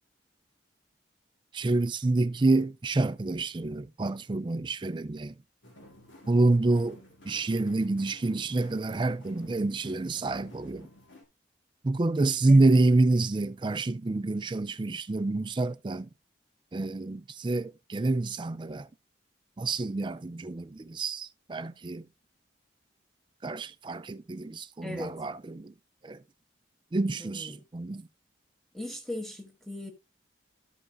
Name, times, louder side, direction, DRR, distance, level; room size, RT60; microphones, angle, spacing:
voice 1, 1.5-5.3 6.3-7.0 7.2-10.9 11.8-16.1 16.7-18.9 19.6-22.0 23.4-25.7 26.0-26.2 26.9-28.1, right 2 dB, 25° right, 0.4 m, -27 dB
sound 1, 5.6-11.2, left 1 dB, 75° left, 2.4 m, -53 dB
voice 2, 24.8-25.2 27.2-27.6 28.7-29.9, left 1 dB, ahead, 1.4 m, -38 dB
13.0 x 5.5 x 2.5 m
head